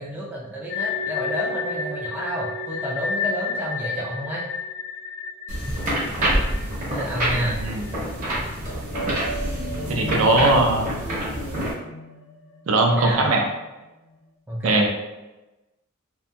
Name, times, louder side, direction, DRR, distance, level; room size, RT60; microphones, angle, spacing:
voice 1, 0.0-4.5 6.9-7.6 12.9-13.4 14.5-14.9, equal, 10° right, -5 dB, 0.3 m, -29 dB
sound 1, 0.7-7.5 7.8-7.9 8.5-13.8, left 4 dB, 60° left, 0.4 m, -32 dB
sound 2, 5.5-11.7, right 1 dB, 40° right, 0.7 m, -27 dB
voice 2, 7.5-7.8 9.9-10.9 12.7-13.4 14.6-14.9, right 2 dB, 70° right, 2 dB, 0.5 m, -20 dB
2.8 x 2.5 x 2.2 m, 1.0 s
head